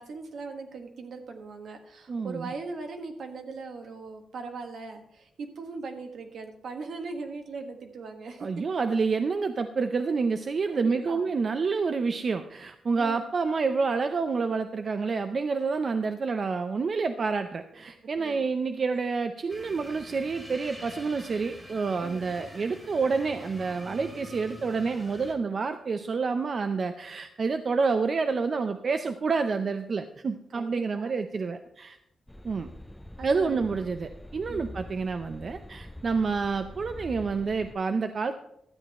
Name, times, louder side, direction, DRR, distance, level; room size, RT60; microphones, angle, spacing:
voice 1, 0.0-8.5 10.7-11.3 13.0-13.2 18.2-18.5 22.0-22.2 30.5-31.1 33.2-33.6 34.5-34.7, right 4 dB, 75° right, 4 dB, 1.5 m, -39 dB
voice 2, 2.1-2.5 8.4-32.0 32.4-32.7 33.2-38.3, right 4 dB, 45° right, 8 dB, 0.5 m, -28 dB
sound 1, 19.5-25.4, right 1 dB, 25° right, 1.9 m, -45 dB
sound 2, 32.3-37.7, left 1 dB, 10° left, 0.5 m, -44 dB
12.5 x 8.3 x 4.3 m, 0.78 s
cardioid pair, 105°, 0 cm